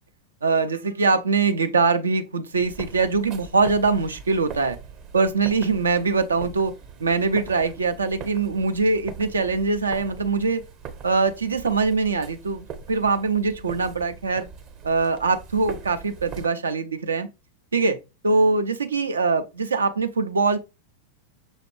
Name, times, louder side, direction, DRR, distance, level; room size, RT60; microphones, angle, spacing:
voice 1, 0.4-4.8 5.1-6.7 7.0-10.6 11.0-14.5 14.8-17.3 17.7-18.0 18.2-20.6, right 4 dB, 75° right, 0.5 m, -22 dB
sound 1, 2.5-16.5, right 6 dB, 40° right, 0.9 m, -41 dB
6.2 x 2.4 x 3.2 m
figure-of-eight pair, 90°, 0 cm